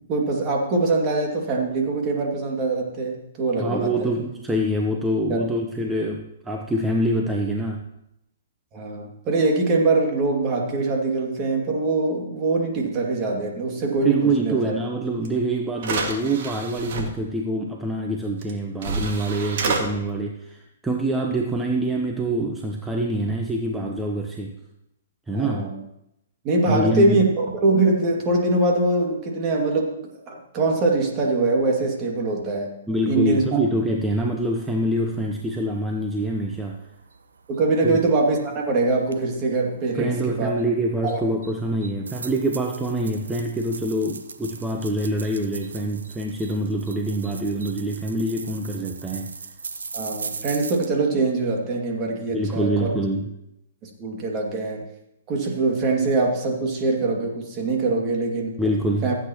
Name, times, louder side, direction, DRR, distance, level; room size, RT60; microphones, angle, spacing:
voice 1, 0.1-4.1 5.3-5.4 8.7-14.7 25.3-25.8 26.4-30.0 30.3-32.7 33.1-33.6 37.5-40.5 41.0-41.2 49.9-52.9 53.8-54.8 55.3-58.6 59.0-59.2, right 3 dB, 30° right, 0 dB, 2.3 m, -23 dB
voice 2, 3.6-7.8 14.0-24.5 25.3-25.6 26.7-27.2 32.9-36.8 37.8-38.0 39.9-49.3 52.3-53.3 58.6-59.1, right 1 dB, 10° right, 1 dB, 0.9 m, -25 dB
sound 1, 15.2-15.3 15.8-17.0 18.4-18.5 18.8-19.8, right 4 dB, 55° right, 2.1 m, -27 dB
sound 2, 33.7-50.9, right 5 dB, 85° right, 1.0 m, -41 dB
15.5 x 8.3 x 3.0 m, 0.83 s
hypercardioid pair, 130°, 0 cm